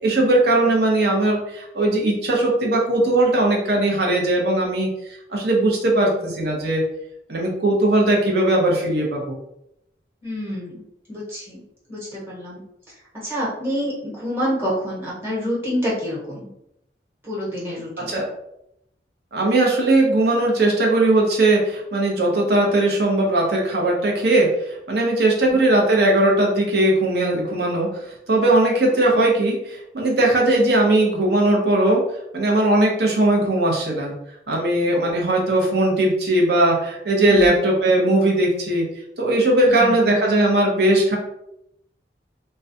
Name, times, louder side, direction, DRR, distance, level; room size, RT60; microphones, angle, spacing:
voice 1, 0.0-4.9 5.3-6.8 7.3-9.4 18.1-18.3 19.3-27.9 28.3-32.0 32.3-34.1 34.5-38.8 39.2-41.2, right 1 dB, 65° right, -1 dB, 0.7 m, -19 dB
voice 2, 10.2-10.8 11.1-11.6 11.9-16.5 17.2-18.1 25.4-25.6 34.9-35.3 37.2-37.5 39.6-40.1, equal, 15° right, -7 dB, 1.0 m, -28 dB
2.3 x 2.2 x 2.6 m, 0.81 s
head